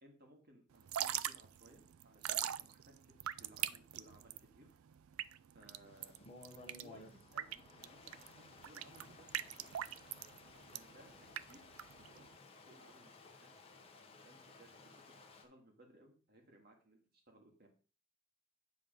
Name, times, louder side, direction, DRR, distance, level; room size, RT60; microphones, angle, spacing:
voice 1, 0.0-4.8 5.2-6.2 6.8-9.9 10.5-12.3 12.7-13.4 13.8-14.9 15.3-17.7, right 1 dB, 45° right, 2 dB, 2.0 m, -63 dB
Drip / Trickle dribble, 0.7-12.3, right 12 dB, 85° right, 0.4 m, -42 dB
Stream, 5.8-15.4, left 3 dB, 30° left, 1.1 m, -58 dB
9.4 x 3.9 x 5.3 m, 0.38 s
head